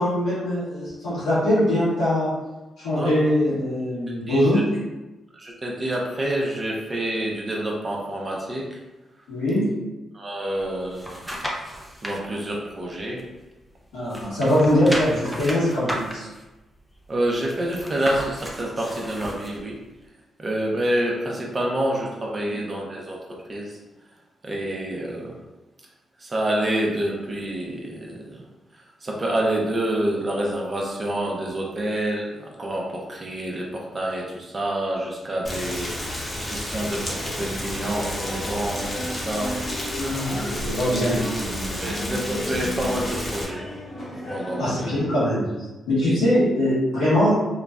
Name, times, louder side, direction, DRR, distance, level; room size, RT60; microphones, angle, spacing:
voice 1, 0.0-2.3 2.8-4.6 9.3-9.7 13.9-16.3 39.9-41.2 44.6-45.5 45.9-47.4, left 1 dB, 90° left, -15 dB, 1.1 m, -22 dB
voice 2, 4.3-4.6 5.3-8.8 10.1-11.2 11.6-11.7 12.0-13.2 17.1-19.8 20.4-23.8 24.4-25.4 26.2-28.5 28.7-40.0 40.7-41.1 41.8-43.7 44.3-44.9 46.0-46.1, right 1 dB, 40° right, -2 dB, 0.7 m, -28 dB
sound 1, 10.6-12.2 12.7-13.8 14.0-19.6 20.0-20.1, equal, ahead, 0.6 m, -34 dB
Rain, 35.4-43.4, left 1 dB, 35° left, 0.9 m, -31 dB
sound 2, 36.9-45.0, equal, 55° left, 1.0 m, -35 dB
3.0 x 2.1 x 2.5 m, 1.1 s
supercardioid pair, 50°, 0 cm